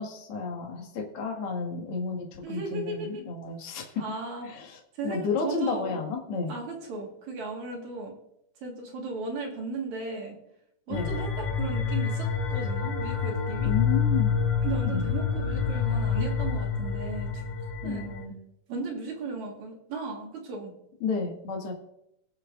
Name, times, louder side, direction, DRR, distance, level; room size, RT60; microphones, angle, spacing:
voice 1, 0.0-3.9 4.4-6.5 10.9-11.1 13.6-14.4 14.8-15.0 17.8-18.4 21.0-21.7, left 4 dB, 50° left, 1 dB, 2.4 m, -32 dB
voice 2, 2.4-3.2 4.0-4.5 4.9-6.0 6.5-8.2 8.6-10.4 10.9-13.7 14.6-17.4 17.8-18.1 18.7-20.8, right 3 dB, 65° right, 0 dB, 2.9 m, -36 dB
sound 1, 10.9-18.2, left 6 dB, 85° left, 4.0 m, -27 dB
22.5 x 7.6 x 2.5 m, 0.79 s
omnidirectional pair, 3.7 m